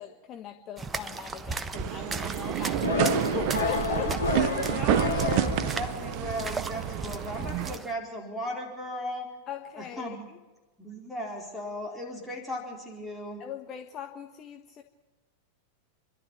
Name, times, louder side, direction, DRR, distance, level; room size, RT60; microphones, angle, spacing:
voice 1, 0.0-4.1 9.5-10.4 13.4-14.8, left 9 dB, 30° left, 5 dB, 1.4 m, -40 dB
sound 1, 0.8-7.9, right 3 dB, 15° right, 1.2 m, -37 dB
sound 2, 1.7-7.8, right 15 dB, 45° right, 0.6 m, -29 dB
sound 3, 2.8-6.3, left 5 dB, 75° left, 2.4 m, -30 dB
voice 2, 4.0-9.3 9.8-10.2 10.8-13.4, left 1 dB, ahead, 0 dB, 4.3 m, -36 dB
29.0 x 12.5 x 9.0 m, 1.2 s
figure-of-eight pair, 90°, 0 cm